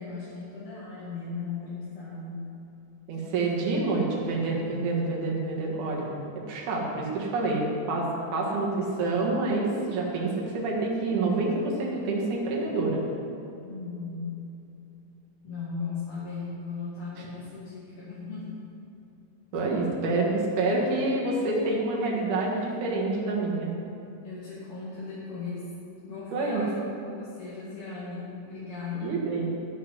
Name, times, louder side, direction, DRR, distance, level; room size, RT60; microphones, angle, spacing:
voice 1, 0.0-2.5 13.6-14.4 15.4-18.6 24.2-25.7 26.0-29.2, left 4 dB, 50° left, -9 dB, 2.5 m, -37 dB
voice 2, 3.1-6.1 6.5-13.0 17.2-17.3 19.5-23.7 26.3-26.7 29.0-29.5, right 2 dB, 80° right, -2 dB, 3.1 m, -27 dB
13.0 x 7.1 x 5.5 m, 2.7 s
omnidirectional pair, 3.5 m